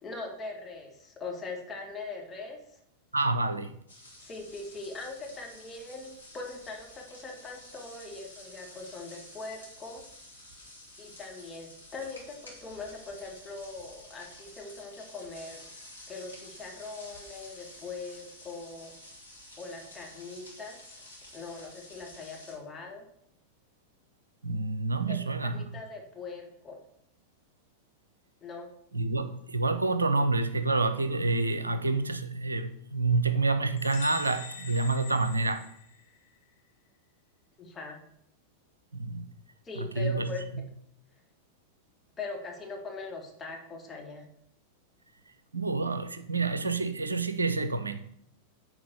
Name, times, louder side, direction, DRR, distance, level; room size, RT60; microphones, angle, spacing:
voice 1, 0.0-2.6 4.2-10.1 11.0-15.6 16.1-18.9 19.6-20.9 21.3-23.1 25.1-26.8 28.4-28.7 37.6-38.0 39.6-40.5 42.2-44.3, left 3 dB, 15° left, 0 dB, 2.3 m, -41 dB
voice 2, 3.1-3.7 24.4-25.6 28.9-35.6 38.9-39.3 39.8-40.7 45.5-48.1, right 3 dB, 80° right, 12 dB, 0.6 m, -28 dB
sound 1, 3.9-22.6, left 1 dB, 80° left, 2.5 m, -50 dB
sound 2, 33.8-36.3, left 4 dB, 50° left, 1.3 m, -44 dB
10.0 x 4.5 x 6.4 m, 0.71 s
figure-of-eight pair, 90°, 0 cm